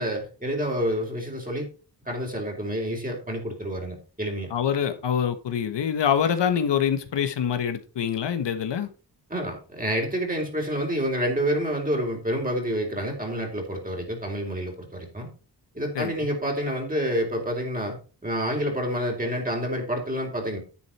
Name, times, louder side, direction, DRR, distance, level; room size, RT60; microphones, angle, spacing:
voice 1, 0.0-1.7 2.1-4.5 9.3-15.3 15.7-18.0 18.2-20.6, equal, 20° right, 1 dB, 3.9 m, -28 dB
voice 2, 4.5-8.9 15.9-16.1, left 8 dB, 75° left, 9 dB, 1.4 m, -25 dB
10.5 x 7.9 x 4.3 m, 0.34 s
cardioid pair, 90°, 42 cm